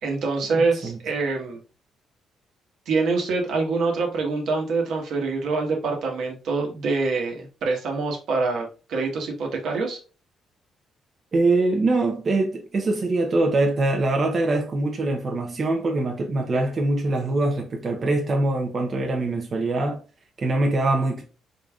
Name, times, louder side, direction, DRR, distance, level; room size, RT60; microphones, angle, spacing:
voice 1, 0.0-1.6 2.9-10.0, right 3 dB, 75° right, 1.1 m, -25 dB
voice 2, 11.3-20.0 20.4-21.2, right 2 dB, 40° right, 0.7 m, -23 dB
3.8 x 3.5 x 2.3 m
cardioid pair, 90°, 0 cm